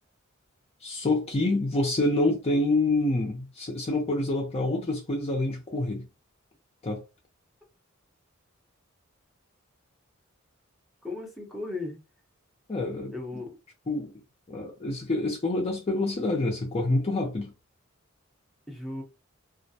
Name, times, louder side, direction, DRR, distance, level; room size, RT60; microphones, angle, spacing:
voice 1, 0.8-6.1 6.8-7.0 12.7-13.1 13.9-14.1 14.5-17.5, left 2 dB, 30° left, 0.5 m, -27 dB
voice 2, 11.0-12.0 13.1-13.5 18.7-19.0, left 2 dB, ahead, 0.7 m, -36 dB
2.4 x 2.0 x 2.7 m
head